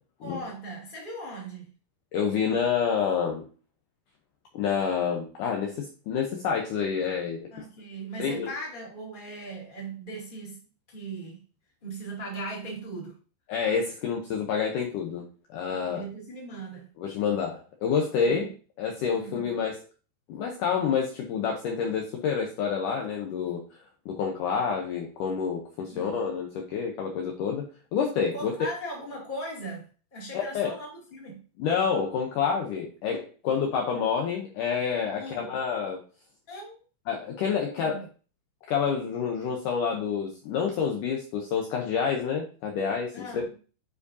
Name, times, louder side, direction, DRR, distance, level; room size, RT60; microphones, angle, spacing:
voice 1, 0.2-1.7 7.5-10.6 10.9-11.4 11.8-13.2 15.7-16.9 18.2-18.5 19.1-19.5 25.9-26.2 28.3-31.4 33.4-33.7 35.2-35.5 36.5-36.8 37.6-38.1 43.1-43.5, right 2 dB, 15° left, -3 dB, 2.0 m, -39 dB
voice 2, 2.1-3.5 4.5-7.5 8.2-8.5 13.5-16.1 17.0-19.8 20.3-23.6 24.1-27.7 27.9-28.5 30.3-30.7 31.6-36.0 37.1-38.1 38.7-43.2, left 6 dB, 70° left, 1 dB, 2.1 m, -28 dB
9.2 x 4.9 x 2.7 m, 0.36 s
omnidirectional pair, 4.5 m